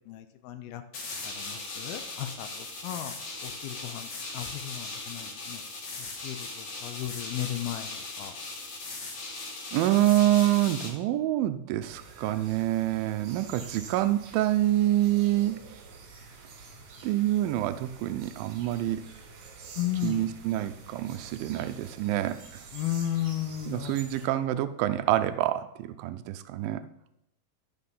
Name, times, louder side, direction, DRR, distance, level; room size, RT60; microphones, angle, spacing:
voice 1, 0.1-0.8 1.2-2.5 2.8-3.1 3.4-4.1 4.3-5.6 6.2-7.9 8.2-8.3 19.8-20.3 22.7-23.9, left 12 dB, 90° left, 8 dB, 2.7 m, -34 dB
sound 1, 0.9-10.9, left 3 dB, 50° left, 2.8 m, -38 dB
voice 2, 9.7-15.6 17.0-19.0 20.0-22.4 23.7-26.8, right 14 dB, 80° right, 10 dB, 2.3 m, -26 dB
sound 2, 11.8-24.3, right 4 dB, 60° right, 3.1 m, -48 dB
12.0 x 6.6 x 5.4 m, 0.82 s
omnidirectional pair, 4.2 m